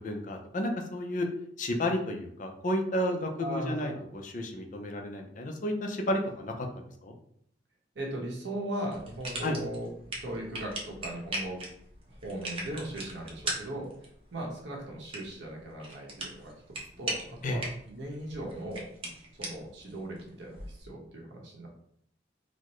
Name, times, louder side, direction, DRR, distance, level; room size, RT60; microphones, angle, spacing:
voice 1, 0.0-1.3 1.6-7.2 9.4-9.6 17.4-17.6, left 1 dB, 45° left, 3 dB, 0.5 m, -32 dB
voice 2, 3.4-4.0 7.9-9.9 10.2-11.6 12.2-13.9 14.3-16.6 17.0-18.8 19.4-21.7, right 1 dB, 65° right, -2 dB, 0.9 m, -38 dB
sound 1, 8.9-20.8, right 2 dB, 30° right, 0.7 m, -41 dB
4.0 x 2.1 x 3.0 m, 0.68 s
head